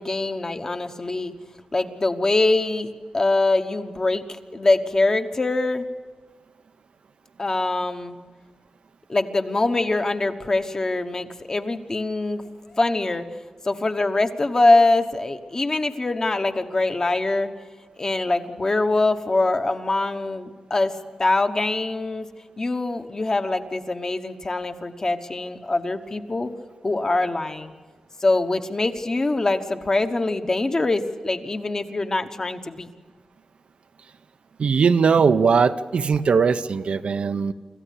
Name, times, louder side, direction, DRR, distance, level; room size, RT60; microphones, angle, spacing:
voice 1, 0.0-1.3 1.7-2.9 3.1-4.2 4.5-5.9 7.4-8.2 9.1-12.4 12.7-13.2 13.6-17.5 18.0-20.9 21.2-22.3 22.6-26.5 26.8-27.7 28.2-32.9, left 2 dB, 30° left, 7 dB, 1.1 m, -23 dB
voice 2, 34.6-37.5, right 5 dB, 65° right, 10 dB, 0.7 m, -19 dB
26.0 x 14.5 x 8.4 m, 1.4 s
wide cardioid pair, 145°, 2 cm